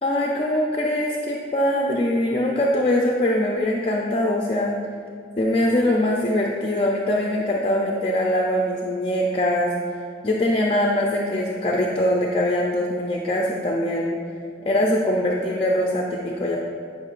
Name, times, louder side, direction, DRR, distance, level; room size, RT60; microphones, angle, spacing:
voice 1, 0.0-4.7 5.4-9.7 10.2-14.2 14.6-16.6, left 1 dB, 30° left, -1 dB, 0.4 m, -22 dB
9.8 x 5.3 x 2.5 m, 2.2 s
head